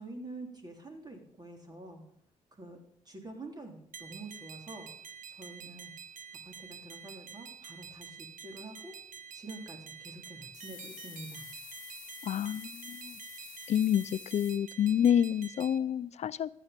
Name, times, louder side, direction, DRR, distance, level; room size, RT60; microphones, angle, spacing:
voice 1, 0.0-2.0 2.6-2.8 3.1-4.9 5.3-5.9 6.5-8.9 9.3-11.7, right 2 dB, 30° right, 3.4 m, -47 dB
sound 1, 3.9-15.8, right 7 dB, 75° right, 1.1 m, -48 dB
sound 2, 10.5-14.6, left 12 dB, 80° left, 0.9 m, -49 dB
voice 2, 12.2-13.2 13.7-16.5, left 9 dB, 55° left, 0.4 m, -28 dB
14.5 x 9.5 x 5.2 m
cardioid pair, 75°, 14 cm